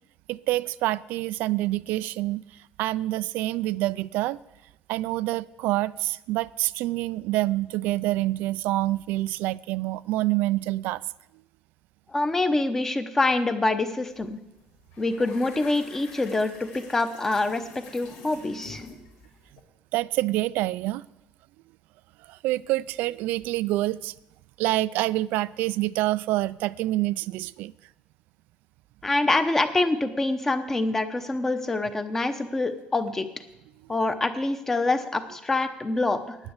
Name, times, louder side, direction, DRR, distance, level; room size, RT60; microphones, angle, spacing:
voice 1, 0.3-2.4 2.8-4.4 4.9-11.0 19.9-21.0 22.3-24.1 24.6-27.7, right 17 dB, 90° right, 0.3 m, -27 dB
voice 2, 12.1-14.4 15.0-18.8 29.0-33.2 33.9-36.4, left 2 dB, 15° left, 0.8 m, -25 dB
sound 1, 14.1-14.3 14.6-19.6, left 4 dB, 75° left, 2.9 m, -47 dB
9.8 x 9.1 x 8.0 m
cardioid pair, 165°, 3 cm